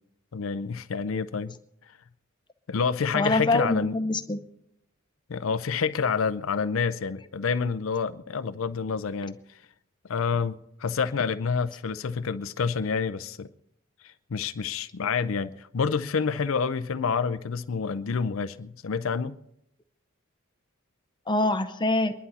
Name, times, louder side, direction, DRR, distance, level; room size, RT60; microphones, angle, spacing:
voice 1, 0.3-1.6 2.7-3.9 5.3-9.4 10.1-13.5 14.0-19.4, left 5 dB, 70° left, 0.5 m, -28 dB
voice 2, 3.1-4.4 21.3-22.1, left 2 dB, 20° left, 0.8 m, -25 dB
23.0 x 11.0 x 4.2 m
head